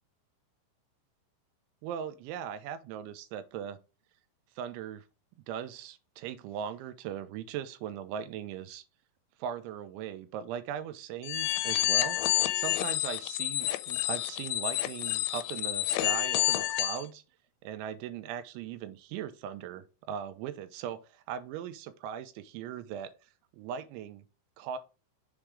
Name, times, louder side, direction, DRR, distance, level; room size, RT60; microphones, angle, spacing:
voice 1, 1.8-3.8 4.6-5.0 5.5-8.8 9.4-12.2 12.5-17.2 17.6-24.2 24.6-24.8, right 8 dB, 85° right, 3.0 m, -39 dB
sound 1, 11.2-17.0, left 15 dB, 85° left, 2.9 m, -29 dB
7.3 x 3.3 x 4.9 m
omnidirectional pair, 5.4 m